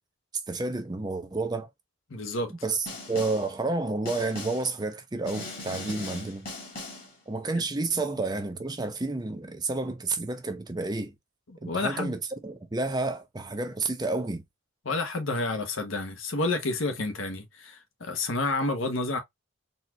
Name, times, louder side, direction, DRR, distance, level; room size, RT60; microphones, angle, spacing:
voice 1, 0.5-1.7 2.6-6.5 7.3-11.1 11.6-14.4, right 3 dB, 20° right, 0.5 m, -30 dB
voice 2, 2.1-2.5 7.5-7.6 11.5-12.2 14.8-19.2, left 2 dB, 75° left, 1.0 m, -30 dB
Snare drum, 2.9-3.5 4.1-4.7 5.3-7.1, left 2 dB, 45° left, 1.7 m, -39 dB
4.1 x 2.4 x 2.7 m
head